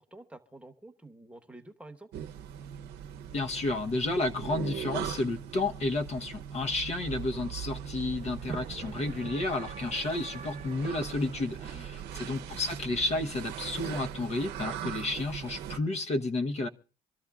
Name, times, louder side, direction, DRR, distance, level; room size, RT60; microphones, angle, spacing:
voice 1, 0.0-2.1 11.7-12.4, right 2 dB, 5° right, 1.1 m, -50 dB
sound 1, 2.1-15.8, right 9 dB, 75° right, 0.8 m, -40 dB
voice 2, 3.3-16.7, left 2 dB, 40° left, 0.9 m, -31 dB
sound 2, 7.1-13.0, right 6 dB, 45° right, 1.1 m, -46 dB
25.5 x 13.0 x 2.3 m
cardioid pair, 110°, 17 cm